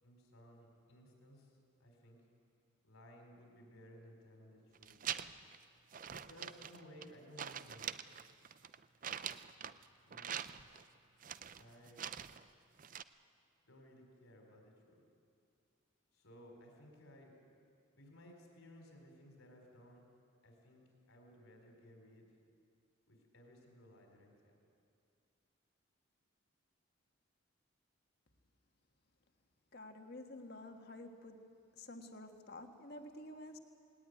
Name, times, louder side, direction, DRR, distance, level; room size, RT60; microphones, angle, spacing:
voice 1, 0.0-2.2 2.8-4.9 6.1-8.2 10.0-10.4 11.6-12.1 13.6-15.0 16.1-17.3 17.9-20.1 20.4-22.4 23.1-24.6, equal, 90° left, 2 dB, 4.3 m, -59 dB
sound 1, 4.8-5.6 5.9-7.1 7.4-9.8 10.1-10.8 11.2-12.4 12.8-13.0, right 8 dB, 40° right, 0.5 m, -44 dB
voice 2, 29.7-31.4 31.7-33.6, left 1 dB, 50° left, 5 dB, 1.6 m, -50 dB
19.5 x 18.0 x 9.5 m, 2.4 s
head